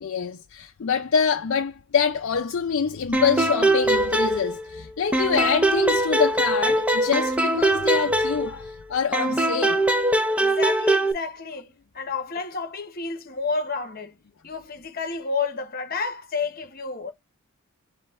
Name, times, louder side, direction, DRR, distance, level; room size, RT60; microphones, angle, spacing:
voice 1, 0.0-9.8 10.3-10.4, left 6 dB, 60° left, 0.4 m, -25 dB
sound 1, 3.1-4.8 5.1-8.7 9.1-11.1, right 1 dB, 5° right, 0.4 m, -22 dB
voice 2, 10.4-14.2 14.4-17.1, left 4 dB, 40° left, 0.9 m, -30 dB
5.3 x 2.2 x 3.4 m
head